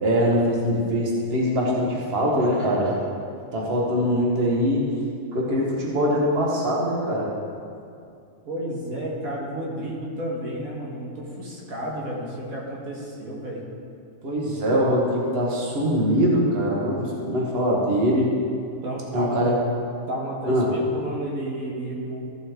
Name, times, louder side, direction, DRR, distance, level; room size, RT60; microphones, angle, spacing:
voice 1, 0.0-2.9 3.5-4.9 5.3-7.3 14.2-18.3 19.1-19.6 20.5-20.7, equal, 45° right, -3 dB, 1.7 m, -22 dB
voice 2, 8.5-13.6 18.8-19.5 20.1-22.2, right 1 dB, 90° right, -3 dB, 2.0 m, -32 dB
14.0 x 6.2 x 3.7 m, 2.5 s
omnidirectional pair, 1.4 m